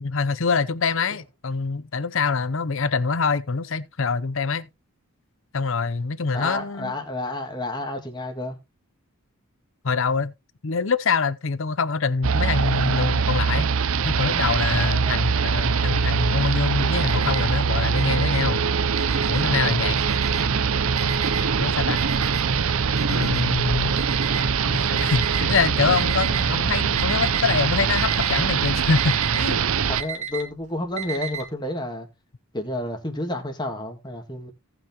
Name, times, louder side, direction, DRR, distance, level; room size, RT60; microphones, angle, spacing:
voice 1, 0.0-4.7 5.5-6.9 9.8-10.3 10.6-13.7 14.0-18.6 19.3-20.0 21.6-22.0 23.1-23.9 24.7-29.6, left 4 dB, 60° left, 0.7 m, -25 dB
voice 2, 6.3-8.6 14.8-15.3 19.4-19.9 23.8-23.9 29.9-32.1 32.5-34.5, left 1 dB, 20° left, 2.1 m, -31 dB
sound 1, 12.2-30.0, right 6 dB, 70° right, 0.6 m, -23 dB
Alarm, 16.6-17.6 17.9-19.6 20.0-20.6 21.0-25.4 26.0-26.6 26.8-27.5 27.7-31.4, right 7 dB, 30° right, 2.3 m, -34 dB
sound 2, 19.6-29.6, left 1 dB, 45° left, 2.4 m, -49 dB
17.5 x 6.0 x 2.9 m
head